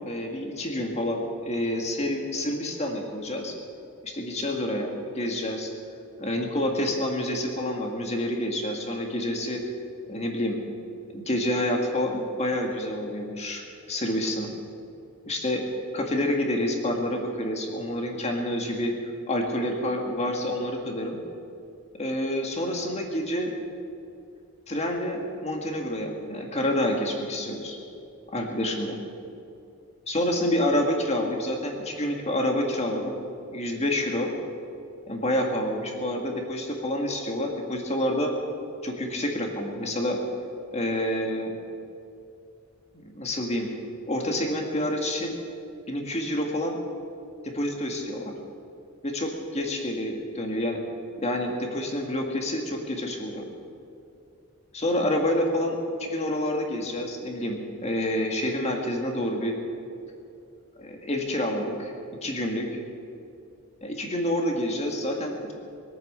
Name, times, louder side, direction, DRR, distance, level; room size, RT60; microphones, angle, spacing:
voice 1, 0.0-3.5 4.0-5.7 6.2-9.6 10.1-10.6 11.1-13.6 13.9-14.6 15.3-15.6 15.9-21.2 22.0-23.5 24.7-27.8 28.3-29.0 30.1-33.2 33.5-34.3 35.1-38.3 38.8-40.2 40.7-41.6 43.0-43.7 44.1-45.3 45.9-46.8 47.4-48.3 49.0-50.8 51.2-53.5 54.7-59.5 60.8-61.9 62.2-62.7 63.8-65.5, left 1 dB, 30° left, 2 dB, 1.9 m, -28 dB
21.0 x 9.0 x 6.7 m, 2.6 s
head